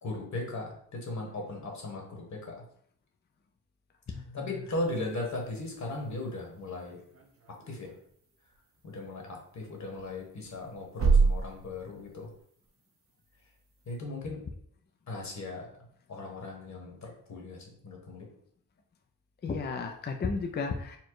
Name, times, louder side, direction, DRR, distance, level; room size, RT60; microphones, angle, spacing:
voice 1, 0.0-2.6 4.3-7.0 7.7-7.9 8.8-12.3 13.9-14.4 15.1-18.3, left 2 dB, 50° left, 0 dB, 1.5 m, -37 dB
voice 2, 4.1-4.5 19.4-21.0, left 4 dB, 30° left, 4 dB, 0.5 m, -33 dB
sound 1, 4.7-14.0, right 4 dB, 40° right, 0.8 m, -33 dB
4.4 x 2.2 x 4.7 m, 0.62 s
cardioid pair, 115°, 36 cm